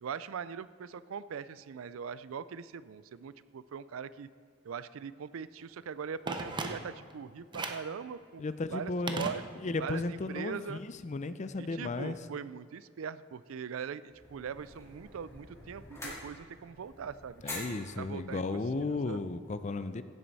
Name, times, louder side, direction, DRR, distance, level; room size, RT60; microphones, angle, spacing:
voice 1, 0.0-4.3 4.6-8.4 8.7-9.4 9.8-10.8 11.6-19.2, right 6 dB, 85° right, 16 dB, 0.4 m, -41 dB
Telephone, 6.3-7.1 7.5-7.9 9.1-9.9 10.2-10.3, right 3 dB, 25° right, 0.6 m, -38 dB
voice 2, 8.4-9.3 9.6-12.2 17.4-20.0, left 3 dB, 35° left, 12 dB, 0.5 m, -34 dB
sound 1, 14.1-19.5, left 2 dB, 15° left, 2.6 m, -47 dB
16.0 x 7.7 x 4.1 m, 2.1 s
head